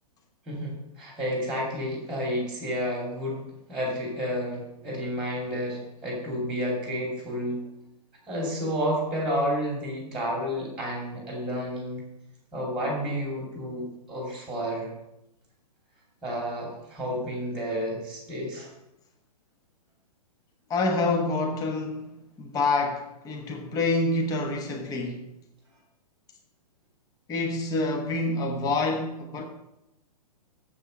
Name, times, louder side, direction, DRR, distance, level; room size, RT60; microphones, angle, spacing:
voice 1, 0.5-7.6 8.3-12.0 12.5-14.9 16.2-18.7, equal, 5° right, 2.6 m, -31 dB
voice 2, 20.7-25.2 27.3-29.5, left 2 dB, 20° left, 1.2 m, -27 dB
7.4 x 6.9 x 6.6 m
figure-of-eight pair, 115°, 20 cm